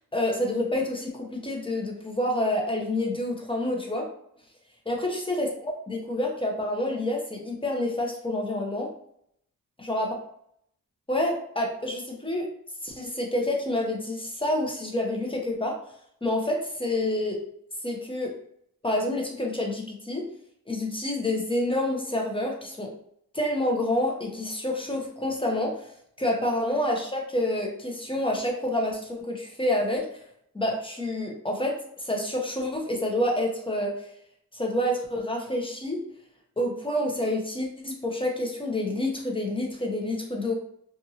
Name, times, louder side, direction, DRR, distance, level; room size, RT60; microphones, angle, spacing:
voice 1, 0.1-4.1 4.9-8.9 9.8-10.1 11.1-12.5 12.8-15.7 16.2-17.4 17.8-18.3 18.8-20.2 20.7-22.9 23.3-25.9 26.2-30.2 30.5-34.1 34.5-36.0 36.6-40.5, left 1 dB, 15° left, 0 dB, 0.9 m, -28 dB
2.6 x 2.6 x 2.8 m, 0.70 s
cardioid pair, 50°, 35 cm